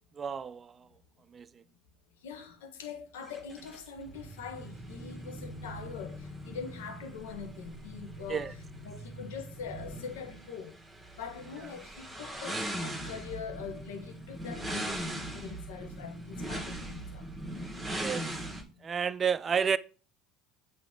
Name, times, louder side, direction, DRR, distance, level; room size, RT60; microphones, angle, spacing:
voice 1, 0.2-0.8 1.3-1.5 8.3-8.5 18.0-18.2 18.8-19.8, right 7 dB, 30° right, 0.4 m, -30 dB
voice 2, 2.2-10.8 11.1-17.3 18.8-18.9, left 6 dB, 80° left, 1.2 m, -43 dB
sound 1, 3.3-18.6, right 1 dB, 5° right, 1.6 m, -40 dB
8.1 x 3.1 x 3.7 m
hypercardioid pair, 80°, 0 cm